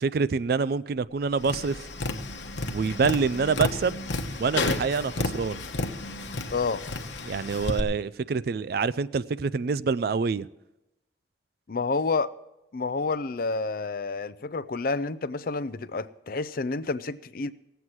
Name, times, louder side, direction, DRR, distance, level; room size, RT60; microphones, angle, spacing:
voice 1, 0.0-1.8 2.7-4.0 4.4-5.6 7.2-10.5, right 5 dB, 55° right, 17 dB, 0.4 m, -26 dB
Tap, 1.4-7.8, left 2 dB, 80° left, 1.0 m, -32 dB
voice 2, 6.5-6.8 11.7-12.3 12.7-17.5, left 3 dB, 50° left, 14 dB, 0.5 m, -29 dB
18.0 x 8.0 x 5.9 m, 0.95 s
head